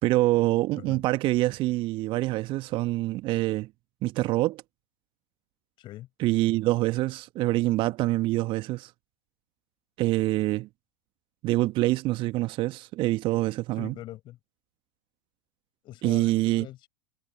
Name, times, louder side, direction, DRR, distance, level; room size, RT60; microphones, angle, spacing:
voice 1, 0.0-3.7 4.0-4.6 6.2-8.9 10.0-10.7 11.4-13.9 16.0-16.7, right 18 dB, 40° right, 1.3 m, -25 dB
voice 2, 5.8-6.1 13.8-14.4 15.8-16.3 16.6-16.9, left 15 dB, 35° left, 6.0 m, -42 dB
figure-of-eight pair, 95°, 14 cm